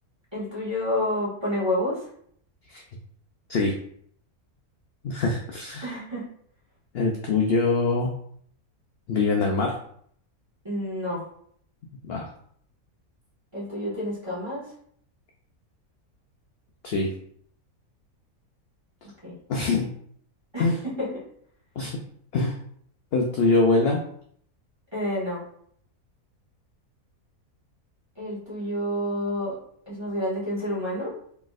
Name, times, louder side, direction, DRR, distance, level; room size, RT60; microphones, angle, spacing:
voice 1, 0.3-2.1 5.8-6.3 10.6-11.3 13.5-14.7 19.2-19.4 20.5-20.7 21.0-21.1 24.9-25.4 28.1-29.6 29.9-31.1, left 1 dB, 20° right, -8 dB, 1.4 m, -29 dB
voice 2, 5.0-5.9 6.9-8.1 9.1-9.7 12.0-12.2 16.8-17.1 19.5-19.9 20.6-20.8 21.8-22.0 22.3-22.6 23.1-24.0, left 3 dB, 65° left, 0 dB, 0.6 m, -23 dB
4.0 x 3.4 x 2.4 m, 0.63 s
omnidirectional pair, 1.6 m